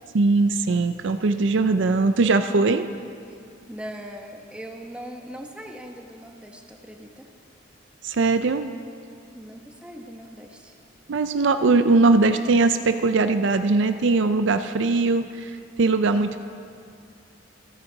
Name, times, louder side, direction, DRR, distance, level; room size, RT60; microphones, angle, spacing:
voice 1, 0.1-2.9 8.0-8.7 11.1-15.5 15.8-16.4, right 3 dB, 60° right, 9 dB, 0.5 m, -20 dB
voice 2, 3.7-7.3 9.3-10.7, equal, 5° right, 2 dB, 1.0 m, -40 dB
26.5 x 9.7 x 4.0 m, 2.4 s
head